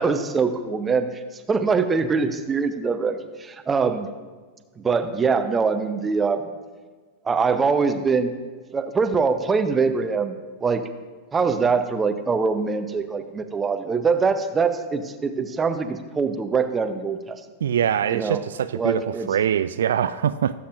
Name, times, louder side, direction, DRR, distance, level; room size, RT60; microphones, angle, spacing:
voice 1, 0.0-4.1 4.8-6.4 7.2-8.3 8.7-10.3 10.6-10.9 11.3-17.4 18.1-18.4 18.8-19.3, right 5 dB, 15° right, 9 dB, 0.8 m, -23 dB
voice 2, 17.6-20.5, right 9 dB, 65° right, 12 dB, 0.3 m, -23 dB
18.0 x 8.5 x 2.6 m, 1.4 s
figure-of-eight pair, 90°, 0 cm